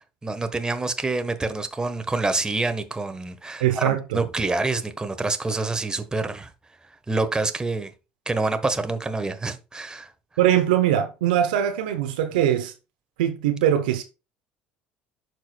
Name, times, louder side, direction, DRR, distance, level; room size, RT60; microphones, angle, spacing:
voice 1, 0.2-6.5 7.1-7.9 8.3-10.1, right 3 dB, 15° right, 1.2 m, -27 dB
voice 2, 3.6-4.2 10.4-12.7 13.2-14.0, right 11 dB, 80° right, 0.9 m, -22 dB
11.5 x 4.7 x 2.3 m
hypercardioid pair, 65°, 5 cm